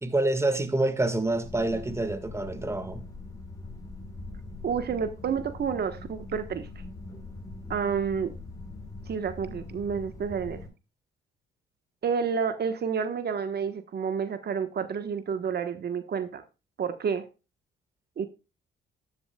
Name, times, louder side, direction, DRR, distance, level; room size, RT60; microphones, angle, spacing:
voice 1, 0.0-3.0, right 2 dB, 15° right, 1.7 m, -27 dB
sound 1, 1.3-10.7, left 2 dB, 15° left, 5.4 m, -42 dB
voice 2, 4.6-6.7 7.7-8.3 9.1-10.6 12.0-16.4 16.8-17.3 18.2-18.3, right 6 dB, 55° right, 1.2 m, -29 dB
13.0 x 11.0 x 2.3 m
cardioid pair, 90°, 20 cm